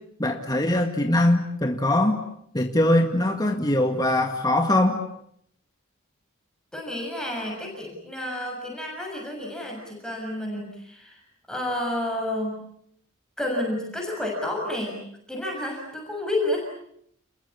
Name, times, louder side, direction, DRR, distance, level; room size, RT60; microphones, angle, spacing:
voice 1, 0.2-2.2 2.5-5.0, left 1 dB, 20° left, 3 dB, 2.0 m, -22 dB
voice 2, 6.7-11.2 11.5-12.6 13.4-15.0 15.3-16.6, left 1 dB, 5° left, -1 dB, 6.7 m, -30 dB
30.0 x 22.0 x 8.5 m, 0.69 s
head